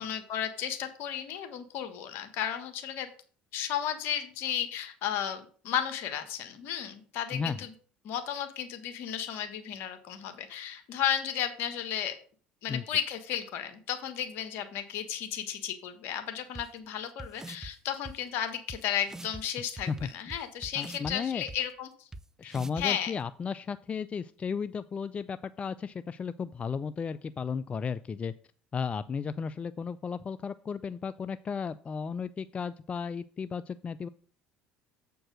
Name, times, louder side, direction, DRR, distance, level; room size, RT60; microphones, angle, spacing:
voice 1, 0.0-3.1 3.5-7.7 8.0-12.1 12.6-21.9 22.4-23.1, left 9 dB, 65° left, 8 dB, 1.4 m, -34 dB
voice 2, 7.3-7.7 12.7-12.8 19.9-20.1 20.8-21.4 22.4-28.3 28.7-34.1, left 6 dB, 30° left, 14 dB, 0.3 m, -34 dB
sound 1, 16.5-16.6 17.2-17.7 18.0-18.1 18.7-18.8 19.1-19.4 19.8-21.1 21.5-21.6 22.1-22.2 22.5-22.9, right 2 dB, 15° right, 0.6 m, -42 dB
7.5 x 4.6 x 6.3 m, 0.44 s
hypercardioid pair, 70°, 4 cm